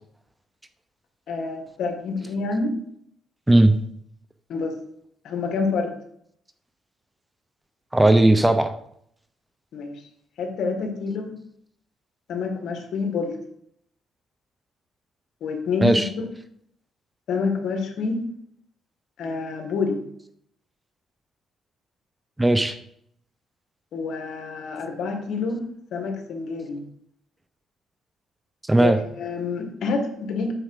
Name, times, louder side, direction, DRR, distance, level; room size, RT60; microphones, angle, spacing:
voice 1, 1.3-2.7 4.5-4.7 5.2-5.9 9.7-10.0 10.4-11.4 12.3-13.4 15.4-16.3 17.3-18.2 19.2-20.0 23.9-25.7 25.9-26.8 28.8-30.5, left 4 dB, 75° left, 3 dB, 1.9 m, -27 dB
voice 2, 3.5-3.8 7.9-8.7 15.8-16.1 22.4-22.8 28.7-29.0, right 1 dB, 10° right, 10 dB, 0.7 m, -17 dB
8.9 x 4.6 x 6.6 m, 0.70 s
cardioid pair, 90°, 0 cm